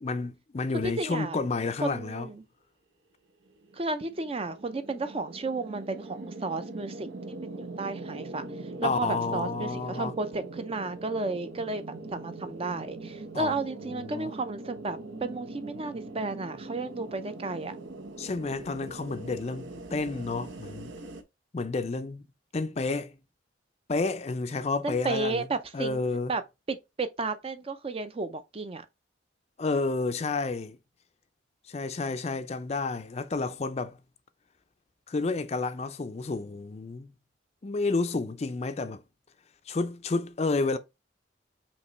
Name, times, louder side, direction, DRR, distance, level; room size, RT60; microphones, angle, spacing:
voice 1, 0.0-2.3 8.8-10.1 13.3-14.3 18.2-20.9 21.5-22.2 22.5-23.2 23.9-25.5 25.7-26.3 29.6-30.8 31.7-34.0 35.1-37.1 37.6-39.0 39.7-40.8, left 3 dB, 35° left, 0.4 m, -30 dB
voice 2, 1.0-1.4 1.8-2.4 3.7-7.1 7.4-8.4 8.8-11.8 12.1-17.8 24.8-26.0 26.3-26.4 26.7-28.9, right 3 dB, 30° right, 0.5 m, -33 dB
sound 1, 3.4-21.2, right 2 dB, 75° right, 0.8 m, -42 dB
5.2 x 3.0 x 3.1 m
head